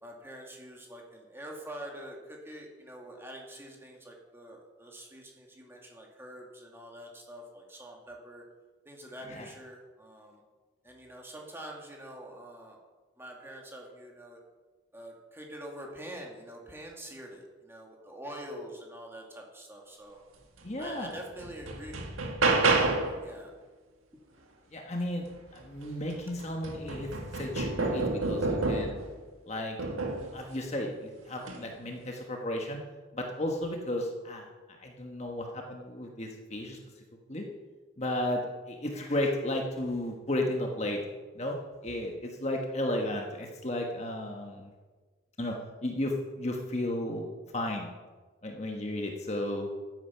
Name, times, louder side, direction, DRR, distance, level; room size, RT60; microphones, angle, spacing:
voice 1, 0.0-8.4 8.9-10.4 10.8-12.8 13.2-14.4 14.9-20.2 20.8-22.0 23.2-23.5, right 1 dB, 10° right, -1 dB, 2.3 m, -45 dB
voice 2, 20.6-21.1 24.7-25.2 25.5-29.0 29.5-29.8 30.3-32.8 33.1-37.0 37.3-37.5 38.0-41.0 41.3-41.6 41.8-44.7 45.4-47.9 48.4-49.7, left 1 dB, 30° left, 2 dB, 1.3 m, -34 dB
sound 1, 20.8-20.9 21.4-23.2 25.6-25.7 26.1-29.1 29.8-30.3 31.4-31.6, right 3 dB, 90° right, 1.9 m, -29 dB
14.0 x 9.3 x 5.7 m, 1.4 s
head